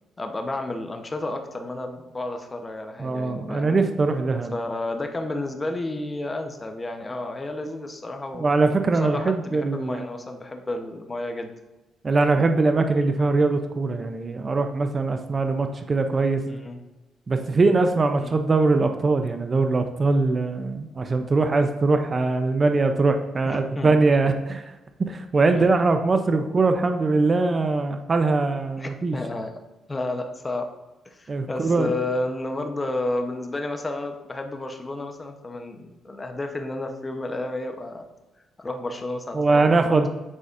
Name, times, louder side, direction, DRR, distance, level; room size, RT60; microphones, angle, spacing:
voice 1, 0.2-3.9 4.5-8.5 9.0-11.5 16.5-16.8 18.2-18.3 23.4-23.9 25.5-25.6 28.8-29.5 29.9-30.7 31.0-38.1 38.6-40.0, left 2 dB, 20° left, 5 dB, 0.8 m, -31 dB
voice 2, 3.0-4.5 8.3-10.0 12.0-16.4 17.3-24.6 25.0-29.2 31.3-31.9 39.3-40.1, right 3 dB, 35° right, 7 dB, 0.5 m, -22 dB
9.7 x 4.0 x 2.5 m, 1.1 s
cardioid pair, 90°, 0 cm